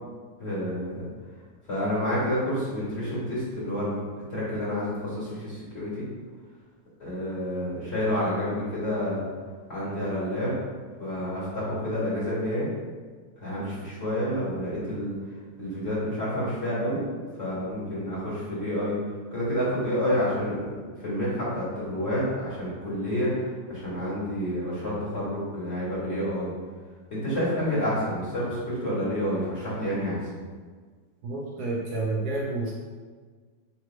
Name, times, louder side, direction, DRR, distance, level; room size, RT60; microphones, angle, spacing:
voice 1, 0.4-1.0 1.7-4.0 4.3-6.0 7.0-9.2 9.7-10.5 11.0-12.7 13.4-15.1 15.6-17.1 17.4-18.9 19.3-20.7 21.0-26.5 27.1-30.2, equal, 35° left, -9 dB, 1.8 m, -29 dB
voice 2, 31.2-32.7, right 2 dB, 70° right, -3 dB, 1.1 m, -29 dB
3.8 x 3.1 x 4.5 m, 1.5 s
omnidirectional pair, 2.0 m